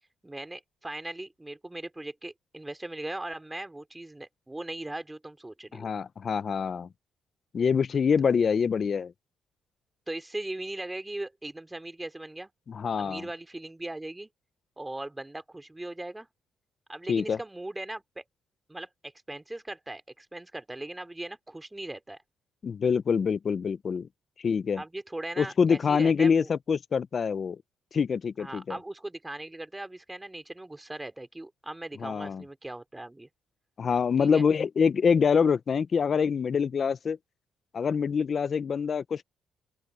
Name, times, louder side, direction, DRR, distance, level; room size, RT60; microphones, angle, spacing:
voice 1, 0.2-5.9 10.1-12.5 12.9-14.3 14.8-16.3 16.9-18.2 18.7-22.2 24.8-26.5 28.4-33.3 34.2-34.5, right 2 dB, 10° right, 3.4 m, -39 dB
voice 2, 5.7-6.9 7.5-9.1 12.7-13.3 17.1-17.4 22.6-24.1 24.4-24.8 25.4-27.6 27.9-28.8 32.0-32.4 33.8-37.2 37.7-39.2, left 6 dB, 45° left, 0.9 m, -25 dB
open air
cardioid pair, 90°, 0 cm